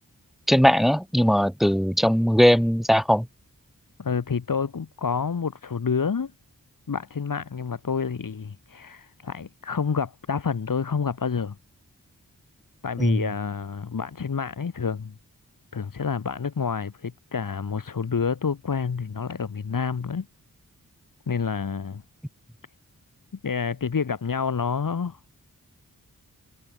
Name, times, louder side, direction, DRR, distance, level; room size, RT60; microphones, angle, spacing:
voice 1, 0.5-3.3 13.0-13.3, equal, ahead, 2.3 m, -19 dB
voice 2, 4.0-6.3 6.9-11.6 12.8-15.1 15.7-20.3 21.3-22.0 23.4-25.2, left 6 dB, 70° left, 2.7 m, -28 dB
wide cardioid pair, 70°, 34 cm